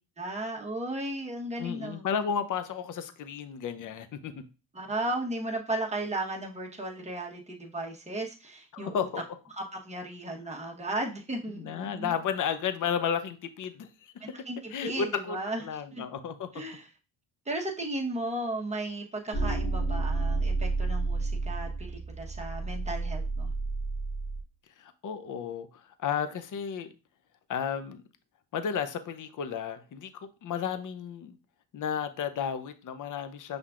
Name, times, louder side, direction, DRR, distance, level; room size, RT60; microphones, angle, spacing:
voice 1, 0.2-2.0 4.7-9.1 9.5-12.1 14.2-15.6 15.9-16.0 16.5-16.9 17.5-23.5, right 1 dB, 15° right, 0 dB, 1.0 m, -35 dB
voice 2, 1.6-4.3 8.7-9.2 11.6-14.4 14.7-16.5 24.8-26.9 27.5-28.0 28.5-31.4 31.7-33.6, left 7 dB, 45° left, 11 dB, 0.6 m, -33 dB
sound 1, 19.3-24.4, right 3 dB, 80° left, 1.9 m, -30 dB
5.6 x 3.5 x 2.4 m, 0.32 s
cardioid pair, 80°, 45 cm